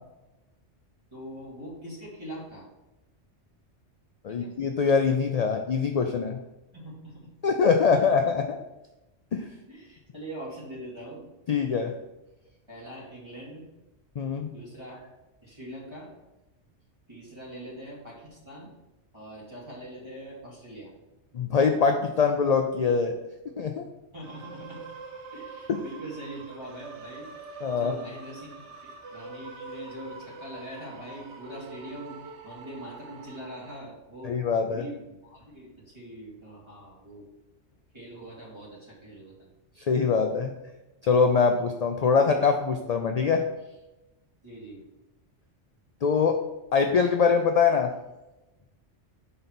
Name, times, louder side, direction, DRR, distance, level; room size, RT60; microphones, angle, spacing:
voice 1, 1.1-2.7 4.3-4.5 6.7-7.2 9.7-11.3 12.7-13.6 14.5-15.1 15.4-16.1 17.1-18.7 19.1-20.9 24.1-24.8 25.3-28.5 28.8-34.4 34.7-37.3 37.9-39.5 44.4-44.8, right 1 dB, 25° right, -7 dB, 2.5 m, -42 dB
voice 2, 4.2-6.4 7.4-8.6 9.3-9.5 11.5-11.9 14.2-14.5 21.3-23.1 23.6-23.8 25.7-25.8 27.6-27.9 34.2-34.8 39.9-40.5 41.0-43.4 46.0-46.4 46.7-47.9, left 5 dB, 60° left, 4 dB, 0.4 m, -23 dB
sound 1, 24.2-33.8, right 4 dB, 70° right, 1.0 m, -44 dB
5.4 x 4.0 x 5.9 m, 1.0 s
omnidirectional pair, 1.2 m